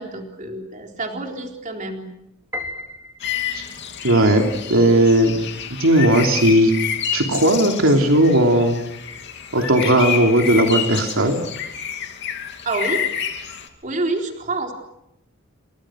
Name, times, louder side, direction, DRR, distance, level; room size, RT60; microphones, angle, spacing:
voice 1, 0.0-2.1 12.6-13.1 13.8-14.7, right 2 dB, 40° right, 2 dB, 4.0 m, -27 dB
Piano, 2.5-3.8, left 2 dB, 10° right, 3.7 m, -34 dB
sound 1, 3.2-13.7, left 8 dB, 55° left, 2.8 m, -29 dB
voice 2, 4.0-5.4 5.7-6.7 7.1-8.8 9.5-11.4, right 1 dB, 75° right, 3 dB, 3.1 m, -16 dB
29.5 x 25.0 x 6.3 m, 0.84 s
head